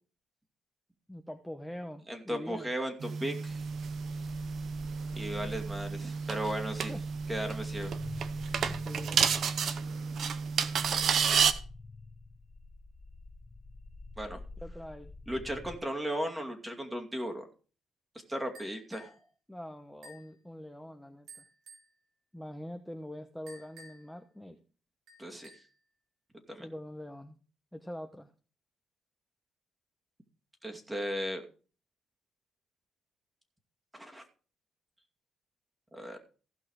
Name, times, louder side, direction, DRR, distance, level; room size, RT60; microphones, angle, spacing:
voice 1, 1.1-2.7 6.9-7.0 8.7-9.3 14.6-15.1 19.5-21.4 22.3-24.6 26.6-27.4 27.7-28.3, equal, 5° left, 5 dB, 1.0 m, -44 dB
voice 2, 2.1-3.6 5.1-6.9 7.3-7.9 14.2-14.4 15.3-17.5 18.3-19.1 25.2-25.5 26.5-26.7 30.6-31.4 33.9-34.2 35.9-36.2, equal, 10° right, 4 dB, 2.4 m, -36 dB
sound 1, 3.0-11.5, right 6 dB, 60° right, 0.9 m, -31 dB
sound 2, 3.5-15.8, left 2 dB, 30° left, 0.9 m, -48 dB
sound 3, 18.5-19.2 20.0-20.3 21.3-21.9 23.5-24.2 25.1-25.8, right 1 dB, 80° right, 3.5 m, -53 dB
15.5 x 5.7 x 4.9 m, 0.38 s
cardioid pair, 90°, 0 cm